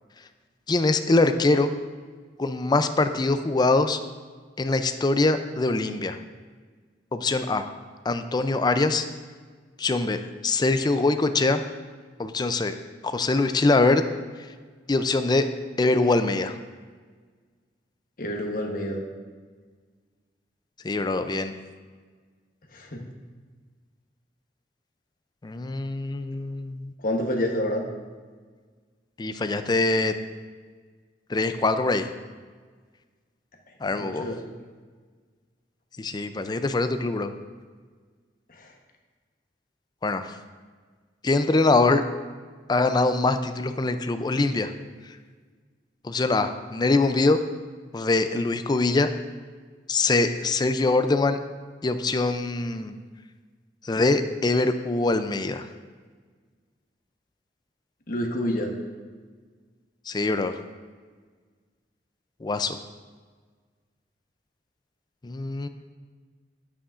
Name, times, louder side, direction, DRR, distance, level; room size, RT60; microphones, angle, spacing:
voice 1, 0.7-1.8 2.4-4.0 4.6-6.2 7.1-7.7 8.1-9.1 9.8-11.6 12.2-12.7 13.0-14.0 14.9-15.5 15.8-16.5 20.8-21.6 25.4-26.9 29.2-30.1 31.3-32.1 33.8-34.3 36.0-37.3 40.0-40.2 41.2-42.0 42.7-44.7 46.0-47.4 47.9-49.1 49.9-51.4 51.8-53.0 53.8-55.7 60.1-60.5 62.4-62.8 65.2-65.7, left 3 dB, 25° left, 9 dB, 0.4 m, -23 dB
voice 2, 18.2-19.0 22.7-23.0 27.0-27.9 33.9-34.4 38.5-38.7 58.1-58.7, left 1 dB, 50° left, 1 dB, 1.1 m, -28 dB
9.6 x 8.4 x 2.5 m, 1.5 s
head